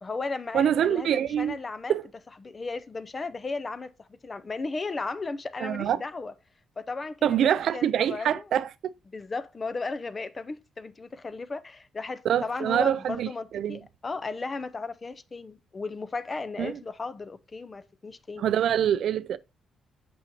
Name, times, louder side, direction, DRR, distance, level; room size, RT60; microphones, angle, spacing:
voice 1, 0.0-1.9 2.4-6.3 6.8-8.5 9.1-18.5, left 3 dB, 25° left, 0.5 m, -35 dB
voice 2, 0.5-1.6 1.9-2.0 5.6-6.0 7.2-8.7 12.3-13.3 13.5-13.8 16.6-16.7 18.4-19.4, right 10 dB, 70° right, 0.3 m, -25 dB
6.3 x 5.7 x 2.9 m
cardioid pair, 120°, 0 cm